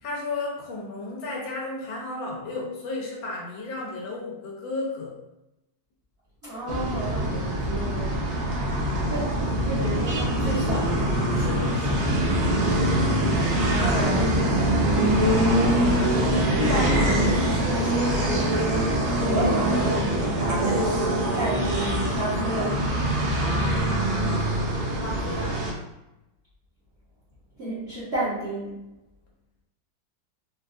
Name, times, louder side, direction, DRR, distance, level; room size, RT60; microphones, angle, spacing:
voice 1, 0.0-5.2 8.9-9.2 11.3-12.1 15.1-15.7 25.0-25.6, left 3 dB, 85° left, -3 dB, 1.5 m, -34 dB
voice 2, 6.4-8.7 9.1-11.1 13.5-14.7 16.6-19.9 20.4-22.9 27.6-28.8, right 1 dB, 45° right, -11 dB, 1.0 m, -31 dB
sound 1, 6.7-25.7, right 1 dB, 65° right, 1.2 m, -23 dB
4.0 x 2.3 x 2.4 m, 0.91 s
omnidirectional pair, 2.1 m